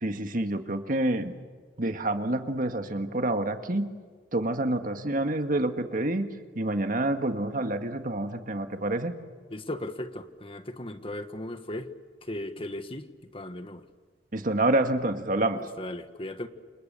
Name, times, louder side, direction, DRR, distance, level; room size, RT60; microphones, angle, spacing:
voice 1, 0.0-1.3 1.8-3.9 4.3-6.3 6.5-9.1 14.3-15.6, right 1 dB, 50° right, 7 dB, 1.8 m, -27 dB
voice 2, 9.5-11.9 12.3-13.1 13.3-13.8 15.6-16.5, left 1 dB, 30° left, 8 dB, 1.5 m, -37 dB
29.5 x 27.5 x 6.9 m, 1.5 s
head